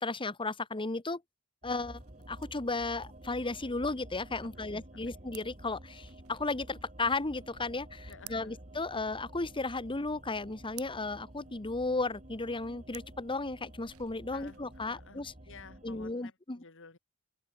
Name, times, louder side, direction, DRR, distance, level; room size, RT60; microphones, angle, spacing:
voice 1, 0.0-1.2 1.6-2.0 2.3-15.3 15.8-16.6, left 3 dB, 25° left, 1.2 m, -34 dB
sound 1, 1.6-16.1, right 1 dB, 35° right, 4.6 m, -51 dB
sound 2, 1.9-15.2, right 13 dB, 75° right, 3.8 m, -58 dB
voice 2, 4.6-5.2 8.1-8.6 14.3-17.0, left 4 dB, 60° left, 3.3 m, -53 dB
head